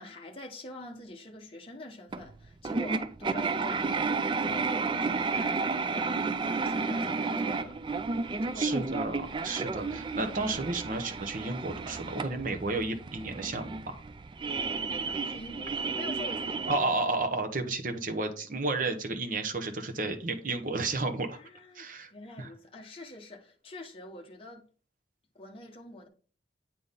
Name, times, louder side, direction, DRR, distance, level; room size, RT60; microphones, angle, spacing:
voice 1, 0.0-4.1 4.4-7.8 8.4-9.2 15.1-17.0 21.3-24.6 25.3-26.1, left 1 dB, 30° left, 1.1 m, -45 dB
sound 1, 2.1-16.8, right 4 dB, 25° right, 0.3 m, -32 dB
voice 2, 8.6-14.0 16.7-21.4 21.7-22.1 22.4-22.5, right 3 dB, 50° right, 0.9 m, -32 dB
8.6 x 4.0 x 3.7 m
head